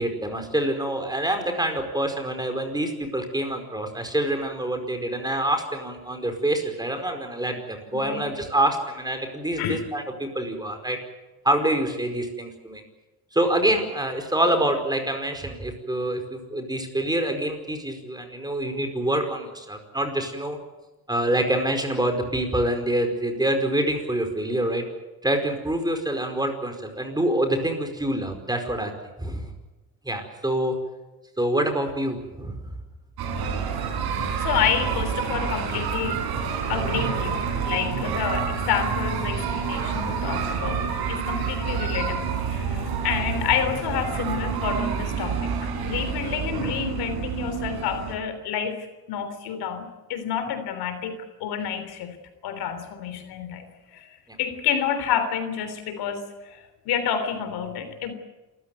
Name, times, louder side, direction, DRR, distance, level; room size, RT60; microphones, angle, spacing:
voice 1, 0.0-11.0 11.4-12.8 13.3-20.6 21.1-24.8 25.2-28.9 29.2-29.5 30.0-30.7 31.4-32.6, right 1 dB, 10° right, 6 dB, 5.0 m, -26 dB
voice 2, 7.9-8.3 9.6-9.8 34.4-36.2 36.7-52.2 52.4-53.7 53.9-54.1 54.4-58.1, left 8 dB, 90° left, 9 dB, 3.5 m, -29 dB
sound 1, 33.2-48.2, right 6 dB, 80° right, 5.6 m, -28 dB
27.5 x 15.0 x 9.4 m, 1.1 s
cardioid pair, 100°, 37 cm